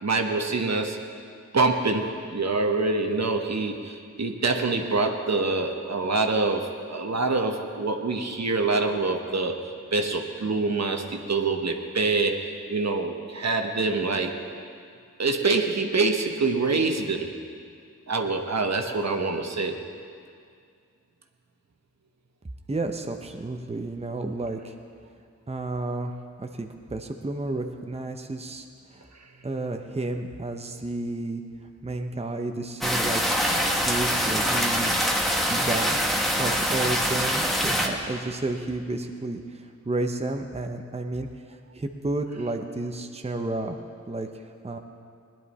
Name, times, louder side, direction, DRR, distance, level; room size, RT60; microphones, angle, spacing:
voice 1, 0.0-1.0 1.5-9.5 9.9-14.4 15.2-17.3 18.1-19.8, right 3 dB, 65° right, 4 dB, 1.1 m, -25 dB
voice 2, 22.7-24.7 25.5-26.1 26.4-28.7 28.9-29.0 29.4-31.4 31.8-34.9 35.5-36.0 36.3-43.8 44.1-44.3 44.6-44.8, right 2 dB, 20° right, 5 dB, 0.8 m, -31 dB
sound 1, 32.8-37.9, equal, ahead, 1.5 m, -24 dB
18.0 x 10.5 x 4.2 m, 2.3 s
cardioid pair, 45°, 30 cm